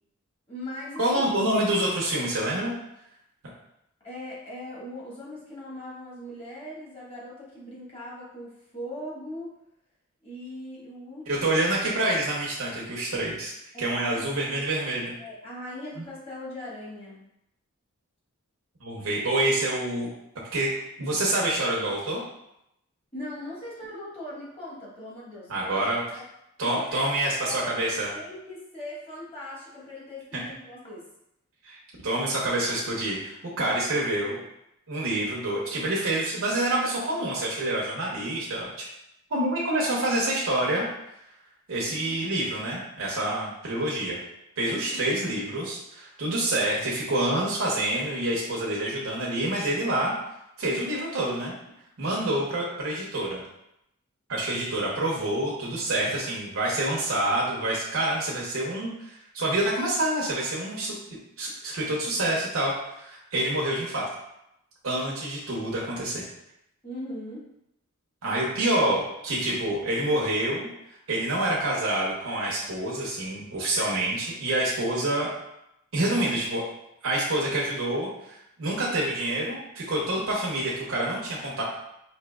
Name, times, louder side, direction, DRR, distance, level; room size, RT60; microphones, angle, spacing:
voice 1, 0.5-1.0 4.0-9.5 10.2-11.4 13.7-14.3 15.2-17.3 23.1-25.7 26.6-27.1 27.4-27.7 28.1-31.1 41.8-42.1 44.7-45.0 66.8-67.5, left 1 dB, 25° left, -7 dB, 1.3 m, -40 dB
voice 2, 1.0-2.7 11.3-13.5 13.8-15.1 18.8-20.1 20.5-20.7 21.0-22.2 25.5-26.2 26.6-28.1 31.6-31.8 32.0-34.4 34.9-38.7 39.3-40.9 41.7-44.2 44.6-50.1 50.6-51.5 52.0-53.4 54.3-60.9 61.4-64.1 64.8-66.2 68.2-70.7 71.1-75.3 75.9-76.6 77.0-81.6, right 1 dB, 65° right, -5 dB, 0.8 m, -27 dB
5.0 x 2.7 x 2.3 m, 0.81 s
head